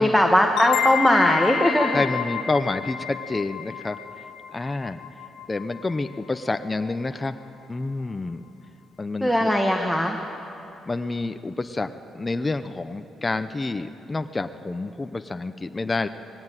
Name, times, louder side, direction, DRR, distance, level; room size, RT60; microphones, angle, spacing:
voice 1, 0.0-2.0 9.2-10.2, equal, ahead, 3 dB, 1.5 m, -19 dB
sound 1, 0.6-6.0, left 9 dB, 80° left, 1.2 m, -29 dB
voice 2, 1.9-4.0 4.5-5.0 5.5-7.4 7.7-8.4 9.0-9.5 10.9-16.1, left 3 dB, 20° left, 9 dB, 0.7 m, -28 dB
19.5 x 16.0 x 9.2 m, 2.9 s
cardioid pair, 90°, 0 cm